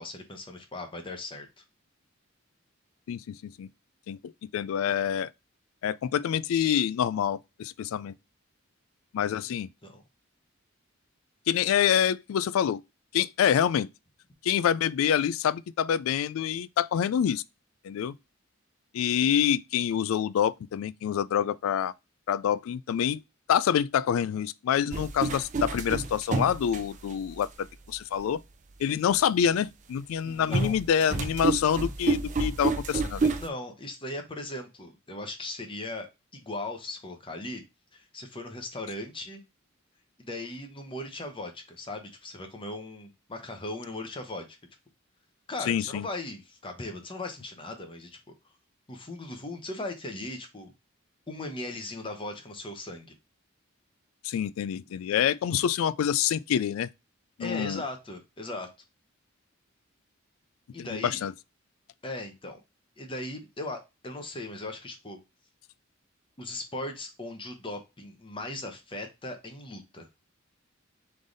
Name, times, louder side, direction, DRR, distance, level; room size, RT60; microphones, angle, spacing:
voice 1, 0.0-1.6 9.8-10.0 30.2-30.8 33.4-37.6 37.9-39.4 40.2-44.5 45.5-48.2 48.9-50.7 51.3-53.1 57.4-58.7 60.7-61.2 62.0-62.6 63.0-65.2 66.4-70.1, left 2 dB, 25° left, 0.9 m, -38 dB
voice 2, 3.1-3.7 4.1-5.3 5.8-8.1 9.1-9.7 11.5-12.8 13.1-13.9 14.4-17.4 17.8-18.2 18.9-21.9 22.3-23.2 23.5-27.5 27.9-28.4 28.8-33.3 45.7-46.1 54.2-56.9 57.4-57.8 60.8-61.3, left 9 dB, 80° left, 0.3 m, -26 dB
sound 1, 24.9-27.4 28.1-28.2 30.5-33.5, right 3 dB, 35° right, 0.5 m, -29 dB
3.7 x 3.4 x 3.8 m
head